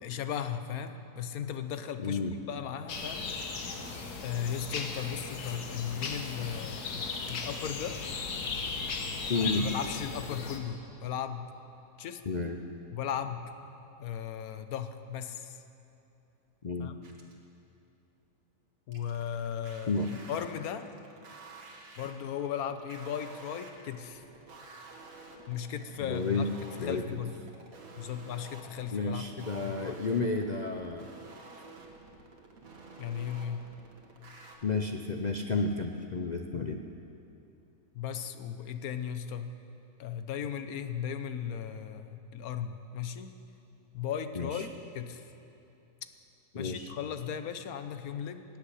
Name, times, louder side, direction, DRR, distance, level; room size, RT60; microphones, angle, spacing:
voice 1, 0.0-2.2 2.5-3.3 4.2-8.0 9.4-11.5 12.0-12.2 12.9-13.5 14.0-15.6 16.8-17.0 18.9-20.9 22.0-24.2 25.5-26.5 26.8-27.3 28.0-30.0 33.0-33.7 37.9-39.6 40.0-43.3 43.9-45.3 46.6-48.4, left 8 dB, 70° left, 9 dB, 1.2 m, -36 dB
voice 2, 2.0-2.3 9.3-9.7 12.3-12.6 16.6-16.9 19.9-20.1 26.0-26.5 26.8-27.0 28.9-31.1 34.6-36.8 44.4-44.5 46.5-46.9, left 3 dB, 55° left, 4 dB, 0.4 m, -31 dB
sound 1, 2.9-10.6, left 4 dB, 85° left, 1.8 m, -37 dB
sound 2, 17.0-17.4 18.9-34.6, right 3 dB, 65° right, 2.0 m, -50 dB
16.0 x 8.3 x 9.9 m, 2.8 s
omnidirectional pair, 1.6 m